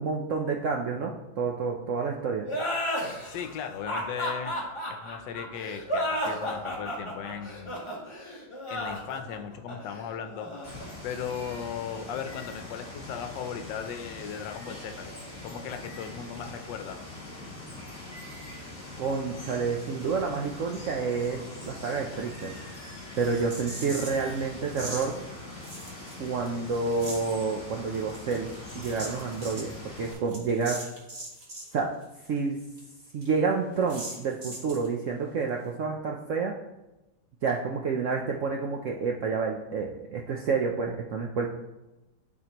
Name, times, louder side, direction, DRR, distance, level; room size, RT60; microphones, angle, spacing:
voice 1, 0.0-2.5 19.0-22.5 23.2-25.2 26.2-28.5 28.7-30.8 31.7-31.9 32.3-32.6 33.1-36.6 37.4-41.5, right 4 dB, 70° right, 1 dB, 0.7 m, -29 dB
sound 1, 2.5-11.7, equal, 20° left, 1.2 m, -33 dB
voice 2, 3.3-4.6 4.9-7.7 8.7-10.5 11.0-15.1 15.4-17.0, left 7 dB, 80° left, 7 dB, 1.3 m, -37 dB
Water, 10.6-30.1, left 2 dB, 45° left, 2.9 m, -42 dB
sound 2, 23.2-24.3 24.7-25.1 25.6-26.5 26.7-27.3 27.9-31.7 32.0-32.1 32.4-32.5 32.8-32.9 33.2-33.3 33.9-34.9, right 1 dB, 35° right, 1.7 m, -40 dB
12.0 x 4.2 x 2.9 m, 1.0 s
omnidirectional pair, 1.9 m